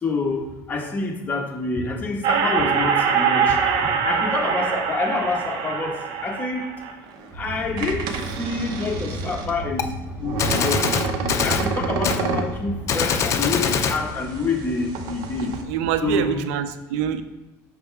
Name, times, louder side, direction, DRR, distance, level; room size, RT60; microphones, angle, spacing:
voice 1, 0.0-3.6 4.0-6.7 7.3-8.1 8.4-10.8 11.2-15.6 16.0-16.4, left 3 dB, 25° left, 0 dB, 1.4 m, -27 dB
sound 1, 2.2-7.2 7.8-9.5 10.2-12.6 13.1-14.6 14.9-15.6, right 6 dB, 65° right, 0.8 m, -25 dB
sound 2, 7.3-16.3, right 3 dB, 40° right, 1.3 m, -35 dB
Gunshot gunfire, 9.8-9.9 10.4-11.7 12.0-12.2 12.9-14.0, left 7 dB, 45° left, 0.6 m, -23 dB
voice 2, 15.4-17.2, right 9 dB, 90° right, 11 dB, 0.5 m, -25 dB
6.4 x 5.8 x 3.5 m, 1.1 s
supercardioid pair, 110°, 7 cm